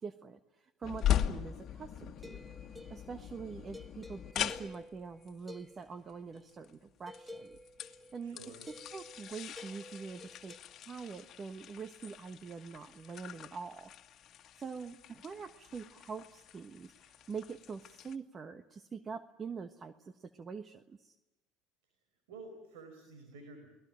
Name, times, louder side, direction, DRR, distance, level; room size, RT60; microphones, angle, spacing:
voice 1, 0.0-2.5 2.9-7.6 8.1-13.9 14.6-21.2, right 5 dB, 35° right, 11 dB, 1.3 m, -45 dB
sound 1, 0.8-18.1, left 11 dB, 50° left, 1.8 m, -41 dB
sound 2, 2.2-6.6 7.1-10.6, left 1 dB, 10° right, 2.1 m, -52 dB
voice 2, 8.2-8.7 22.3-23.7, right 3 dB, 85° right, 5 dB, 5.4 m, -50 dB
29.0 x 20.0 x 9.1 m, 1.0 s
supercardioid pair, 85°, 0 cm